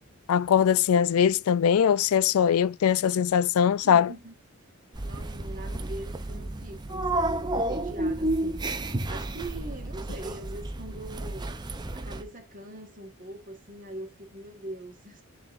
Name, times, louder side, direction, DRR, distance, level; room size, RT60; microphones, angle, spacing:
voice 1, 0.3-4.1, left 8 dB, 75° left, 0.3 m, -21 dB
voice 2, 3.8-4.3 5.0-8.6 9.1-11.5 11.9-15.2, right 1 dB, 35° right, 1.7 m, -42 dB
sound 1, 4.9-12.2, right 1 dB, 20° right, 0.6 m, -31 dB
10.5 x 3.9 x 2.5 m
head